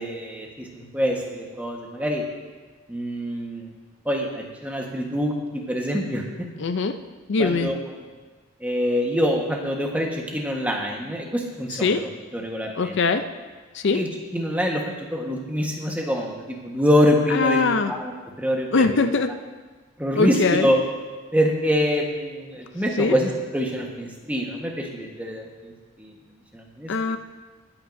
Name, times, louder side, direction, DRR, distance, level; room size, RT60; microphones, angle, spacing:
voice 1, 0.0-2.2 2.9-3.7 4.0-6.5 7.4-7.8 8.6-13.0 13.9-18.1 18.4-19.1 20.0-20.8 21.3-25.7 26.0-26.1 26.5-26.9, equal, 5° right, 0 dB, 1.3 m, -25 dB
voice 2, 6.6-7.0 7.3-7.7 11.7-12.0 12.8-13.2 13.7-14.0 17.3-17.9 18.7-19.3 20.2-20.7 23.0-23.1 26.9-27.2, left 4 dB, 60° left, 8 dB, 0.5 m, -21 dB
21.5 x 8.9 x 2.6 m, 1.4 s
head